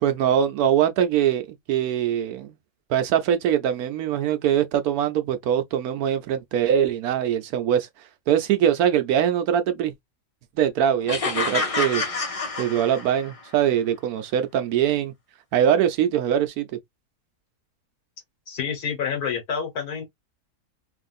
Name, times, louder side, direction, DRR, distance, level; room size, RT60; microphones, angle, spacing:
voice 1, 0.0-2.6 2.9-7.9 8.3-9.9 10.6-12.0 12.6-15.1 15.5-16.7, right 9 dB, 80° right, 1.1 m, -22 dB
sound 1, 11.1-13.4, left 3 dB, 35° left, 0.5 m, -27 dB
voice 2, 18.5-20.0, left 6 dB, 85° left, 1.7 m, -28 dB
3.3 x 2.5 x 2.4 m
omnidirectional pair, 1.6 m